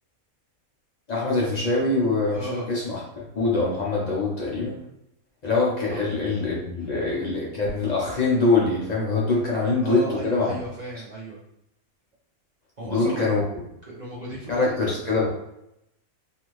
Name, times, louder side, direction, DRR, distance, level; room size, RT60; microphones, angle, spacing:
voice 1, 1.1-4.8 5.4-10.5 12.8-13.4 14.5-15.3, left 3 dB, 60° left, -5 dB, 0.4 m, -24 dB
voice 2, 2.3-2.7 5.9-6.0 6.8-6.9 9.5-11.4 12.8-13.3 13.9-15.0, right 2 dB, 50° right, -6 dB, 0.5 m, -35 dB
2.7 x 2.5 x 3.0 m, 0.82 s
omnidirectional pair, 1.5 m